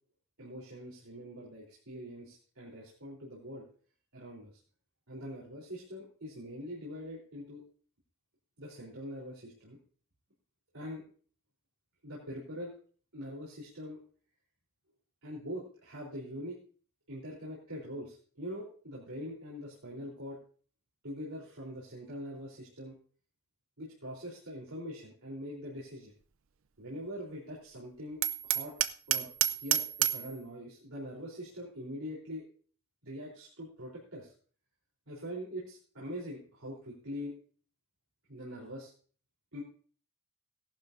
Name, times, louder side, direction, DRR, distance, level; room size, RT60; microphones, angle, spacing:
voice 1, 0.4-3.6 4.1-4.5 5.1-7.6 8.6-9.8 10.7-11.0 12.0-12.7 13.1-14.0 15.2-16.6 17.1-20.4 21.0-22.9 23.8-26.1 26.8-28.7 29.1-29.3 29.6-32.4 33.0-34.3 35.1-37.3 38.3-38.9 39.5-39.6, equal, 85° right, -5 dB, 3.7 m, -43 dB
Hammer, 28.2-30.3, right 12 dB, 65° right, 0.5 m, -29 dB
17.5 x 11.5 x 2.6 m, 0.43 s
head